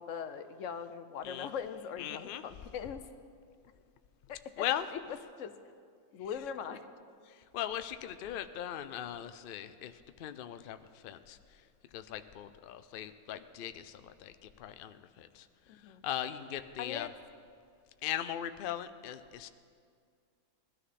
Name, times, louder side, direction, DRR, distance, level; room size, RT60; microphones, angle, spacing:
voice 1, 0.0-3.0 4.3-5.0 5.4-5.5 6.1-6.9 15.7-16.0 16.8-17.1, left 7 dB, 65° left, 11 dB, 1.0 m, -41 dB
voice 2, 2.0-2.4 4.6-4.8 7.3-9.9 10.2-10.8 11.0-11.4 11.9-15.5 16.0-17.1 18.0-19.5, left 11 dB, 80° left, 10 dB, 0.4 m, -39 dB
20.0 x 13.0 x 4.2 m, 2.2 s
omnidirectional pair, 1.6 m